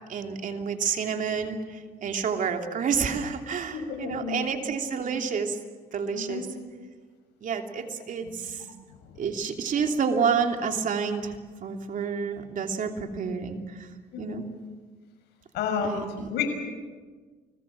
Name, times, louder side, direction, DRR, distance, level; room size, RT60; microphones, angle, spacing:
voice 1, 0.1-5.6 5.9-6.5 7.4-8.6 9.2-13.9 14.2-14.5 15.8-16.3, right 6 dB, 50° right, 4 dB, 3.0 m, -29 dB
voice 2, 3.7-4.4 6.1-6.5 8.2-8.6 14.1-14.5 15.5-16.0 16.3-16.5, left 7 dB, 80° left, 5 dB, 6.4 m, -31 dB
30.0 x 21.0 x 7.6 m, 1.4 s
cardioid pair, 110°, 17 cm